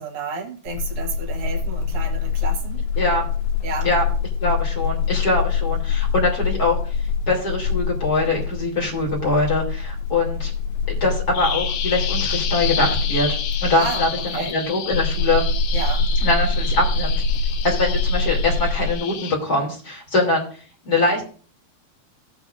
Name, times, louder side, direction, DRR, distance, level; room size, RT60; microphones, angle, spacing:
voice 1, 0.0-2.9 3.6-3.9 13.8-14.0 14.3-14.6 15.7-16.1, right 4 dB, 75° right, 1 dB, 1.3 m, -31 dB
sound 1, 0.7-18.9, left 4 dB, 70° left, 2.3 m, -24 dB
voice 2, 4.4-6.8 7.3-10.5 10.9-14.1 14.3-15.4 16.2-17.2 17.6-20.4 20.8-21.2, left 2 dB, 25° left, -2 dB, 2.9 m, -22 dB
Bird vocalization bird call bird song, 11.3-19.3, left 9 dB, 85° left, 2.8 m, -30 dB
16.0 x 8.3 x 2.6 m, 0.40 s
omnidirectional pair, 4.5 m